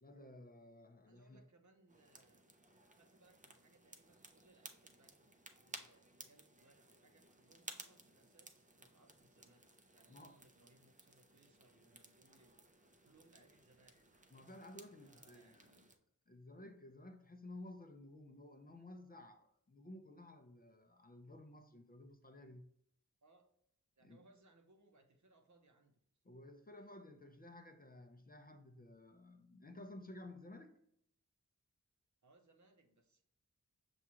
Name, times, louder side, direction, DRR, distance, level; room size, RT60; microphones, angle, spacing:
voice 1, 0.0-1.4 10.1-10.4 14.3-15.7 16.3-22.7 24.0-24.2 26.2-30.7, left 1 dB, 25° left, 0.5 m, -55 dB
voice 2, 1.1-2.4 2.9-5.3 5.6-9.6 9.9-12.6 13.0-14.0 15.0-15.9 23.2-23.5 24.0-26.0 26.7-26.9 32.2-33.2, right 2 dB, 60° right, 0.7 m, -69 dB
sound 1, 1.9-16.0, right 2 dB, 25° right, 0.5 m, -58 dB
6.1 x 2.4 x 2.9 m
cardioid pair, 40°, 34 cm